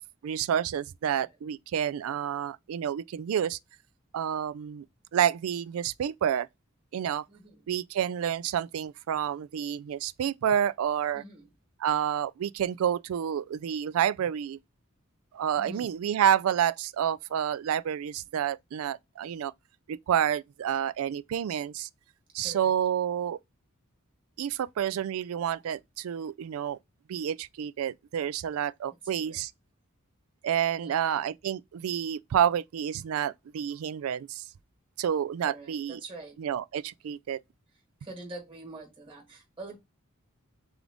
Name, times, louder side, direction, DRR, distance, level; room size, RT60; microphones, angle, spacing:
voice 1, 0.2-3.6 4.1-4.8 5.1-6.5 6.9-7.2 7.7-11.2 11.8-14.6 15.3-19.5 19.9-21.9 22.3-23.4 24.4-26.8 27.1-29.5 30.4-34.4 35.0-36.0 36.4-37.4, right 9 dB, 75° right, 0.3 m, -29 dB
voice 2, 7.3-7.6 11.1-11.5 15.5-15.9 22.4-22.7 29.2-29.4 30.8-31.3 35.4-36.4 38.0-39.8, right 2 dB, 25° right, 1.5 m, -45 dB
3.6 x 3.5 x 3.7 m
head